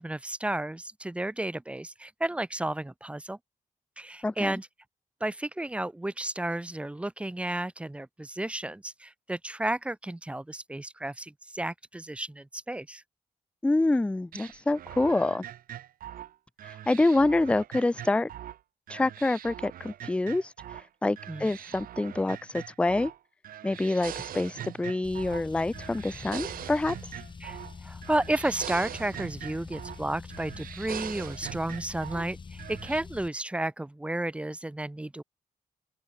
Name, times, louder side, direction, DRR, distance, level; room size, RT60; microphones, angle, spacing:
voice 1, 0.0-3.4 4.0-4.7 5.2-13.0 21.3-21.5 27.4-35.2, right 1 dB, 10° right, 1.0 m, -32 dB
voice 2, 4.2-4.6 13.6-15.5 16.6-18.3 18.9-23.1 23.6-27.2, left 2 dB, 10° left, 0.3 m, -27 dB
sound 1, 14.3-18.6 18.9-20.9 21.2-23.2 23.4-25.5 25.7-27.8 28.0-30.0 30.3-32.3 32.6-33.0, right 11 dB, 85° right, 0.7 m, -42 dB
Car, 25.0-33.3, left 5 dB, 35° left, 4.6 m, -45 dB
open air
wide cardioid pair, 170°, 14 cm